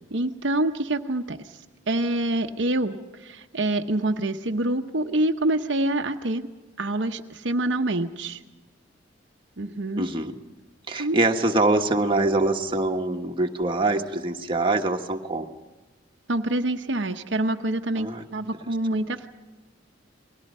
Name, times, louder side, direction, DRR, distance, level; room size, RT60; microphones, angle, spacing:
voice 1, 0.1-1.5 1.9-6.5 6.8-8.4 9.6-10.1 11.0-11.2 16.3-19.3, right 1 dB, 65° right, 5 dB, 1.0 m, -26 dB
voice 2, 9.9-10.4 10.9-15.5 18.0-18.2, right 2 dB, 25° right, 2 dB, 1.4 m, -24 dB
29.5 x 21.0 x 5.5 m, 1.2 s
head